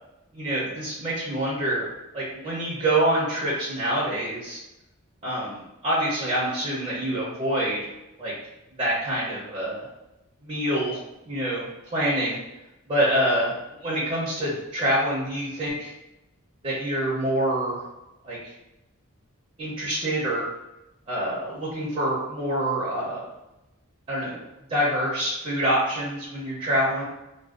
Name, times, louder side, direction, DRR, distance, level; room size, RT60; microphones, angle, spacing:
voice 1, 0.3-1.9 2.1-4.6 5.2-7.9 8.2-8.3 8.7-9.9 10.4-11.0 11.3-12.4 12.9-15.9 16.6-17.8 18.2-18.5 19.6-20.5 21.1-23.2 24.1-24.4 24.7-27.0, right 1 dB, 30° right, -7 dB, 0.5 m, -26 dB
2.4 x 2.1 x 2.3 m, 0.94 s
head